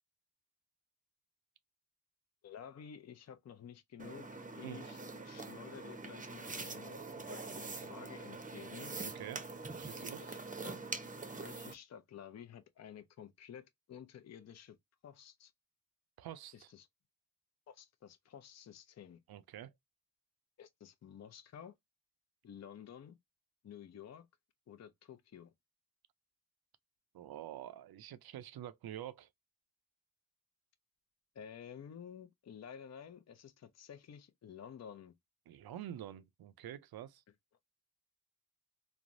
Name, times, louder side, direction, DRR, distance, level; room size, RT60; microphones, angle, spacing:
voice 1, 2.4-8.9 9.9-10.8 11.4-14.8 15.0-15.5 16.5-16.9 17.7-19.2 20.6-21.8 22.4-23.2 23.6-24.3 24.7-25.5 31.3-35.1, left 8 dB, 45° left, 0.5 m, -52 dB
sound 1, 4.0-11.7, right 3 dB, 20° right, 0.6 m, -44 dB
voice 2, 4.6-5.0 9.0-9.4 9.8-10.2 16.2-16.7 19.3-19.7 27.1-29.3 35.5-37.2, right 11 dB, 75° right, 0.5 m, -47 dB
3.2 x 2.0 x 2.4 m
cardioid pair, 45°, 37 cm